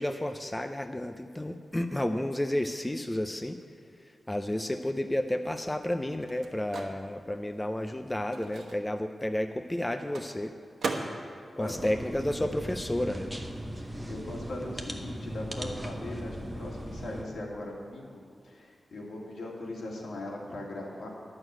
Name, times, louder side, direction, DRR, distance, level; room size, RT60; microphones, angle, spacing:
voice 1, 0.0-3.6 4.0-10.5 11.6-13.3, left 1 dB, 10° left, 7 dB, 0.4 m, -31 dB
Microwave oven, 5.9-13.0 13.3-15.2, right 3 dB, 90° right, 1.1 m, -42 dB
voice 2, 11.1-11.9 13.8-21.1, left 1 dB, 75° left, -3 dB, 2.5 m, -40 dB
sound 1, 11.7-17.2, equal, 15° right, 0.8 m, -38 dB
11.0 x 6.4 x 8.7 m, 2.3 s
wide cardioid pair, 150°, 0 cm